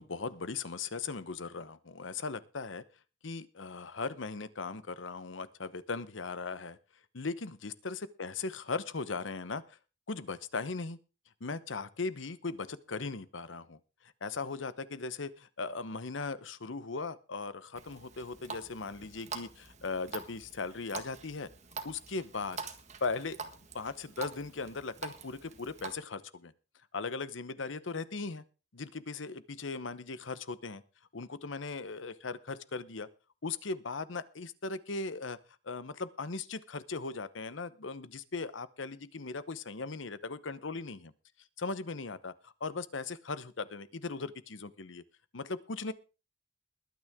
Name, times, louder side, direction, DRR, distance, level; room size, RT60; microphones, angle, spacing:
voice 1, 0.0-2.8 3.2-6.8 7.1-9.8 10.1-11.0 11.4-13.8 14.2-21.5 21.8-22.6 23.0-23.4 23.7-26.5 26.9-28.4 28.7-30.8 31.1-33.1 33.4-35.4 35.6-41.1 41.6-45.0 45.3-45.9, left 4 dB, 85° left, 15 dB, 0.9 m, -38 dB
Water tap faucet, 17.8-25.9, right 4 dB, 35° right, 1.7 m, -45 dB
21.0 x 9.4 x 3.7 m, 0.32 s
head